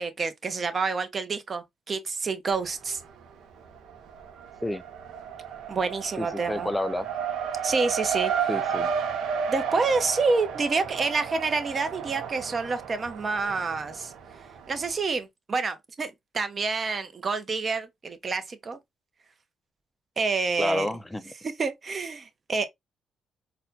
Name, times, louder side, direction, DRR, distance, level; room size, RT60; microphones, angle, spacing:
voice 1, 0.0-3.0 5.7-6.7 7.6-8.5 9.5-14.1 14.7-18.8 20.2-20.9 21.4-22.7, right 4 dB, 40° right, 0.7 m, -28 dB
Race car auto racing, 2.5-3.3 3.6-14.9, right 7 dB, 80° right, 0.7 m, -33 dB
voice 2, 6.2-7.1 8.5-8.9 20.6-21.3, left 1 dB, 10° left, 0.4 m, -30 dB
4.1 x 2.2 x 2.7 m
cardioid pair, 90°, 0 cm